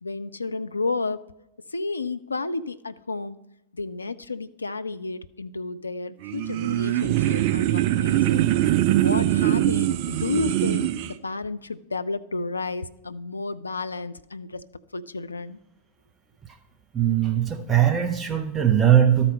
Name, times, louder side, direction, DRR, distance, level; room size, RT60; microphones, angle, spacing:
voice 1, 0.0-1.2 1.7-3.4 3.7-8.5 9.0-14.6 14.9-15.6, left 3 dB, 80° left, 13 dB, 0.3 m, -31 dB
sound 1, 6.2-11.1, right 13 dB, 50° right, 0.4 m, -22 dB
voice 2, 16.9-19.3, right 10 dB, 20° right, 4 dB, 0.8 m, -20 dB
12.5 x 4.3 x 5.4 m, 0.84 s
figure-of-eight pair, 90°, 0 cm